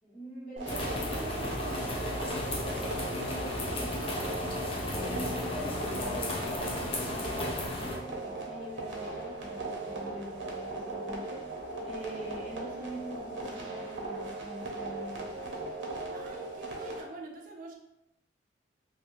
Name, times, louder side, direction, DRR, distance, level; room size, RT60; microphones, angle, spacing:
voice 1, 0.0-4.4 4.9-11.5 11.8-15.2, right 1 dB, 45° left, -8 dB, 1.4 m, -44 dB
sound 1, 0.6-17.0, right 2 dB, 80° right, 0.7 m, -38 dB
sound 2, 0.7-8.0, left 1 dB, 30° left, 0.4 m, -34 dB
voice 2, 16.1-17.7, right 2 dB, 45° right, 1 dB, 0.4 m, -45 dB
2.6 x 2.4 x 3.0 m, 0.83 s
head